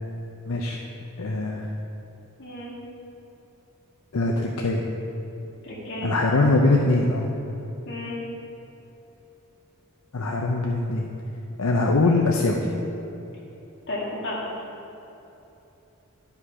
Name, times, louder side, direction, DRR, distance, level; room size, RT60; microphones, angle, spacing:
voice 1, 0.5-0.8 1.2-1.7 4.1-4.8 6.0-7.3 10.1-11.0 11.6-12.7, left 2 dB, 75° left, 0 dB, 0.6 m, -22 dB
voice 2, 2.4-2.7 5.6-6.1 7.9-8.2 13.9-14.4, left 1 dB, 60° left, -5 dB, 2.2 m, -32 dB
11.5 x 5.7 x 4.8 m, 3.0 s
head